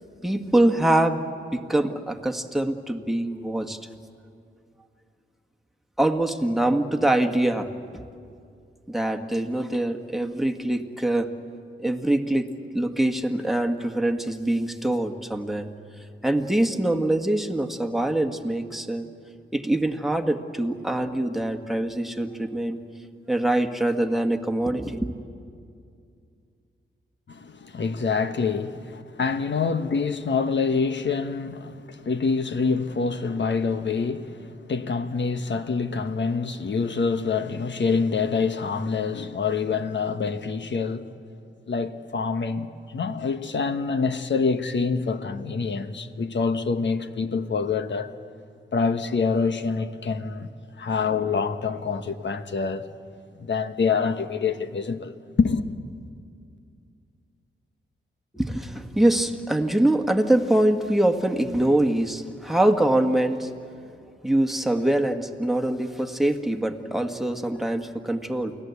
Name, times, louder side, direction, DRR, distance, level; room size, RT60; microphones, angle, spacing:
voice 1, 0.2-1.3 1.5-3.8 6.0-8.0 8.9-11.3 11.8-15.7 16.2-19.1 19.5-22.8 23.3-25.1 58.3-63.5 64.2-68.6, right 1 dB, ahead, 1.6 m, -24 dB
voice 2, 27.3-41.1 41.7-48.1 48.7-50.5 50.8-52.8 53.4-55.1 55.4-55.7, left 5 dB, 60° left, 1.2 m, -26 dB
29.0 x 18.5 x 8.3 m
cardioid pair, 80°, 21 cm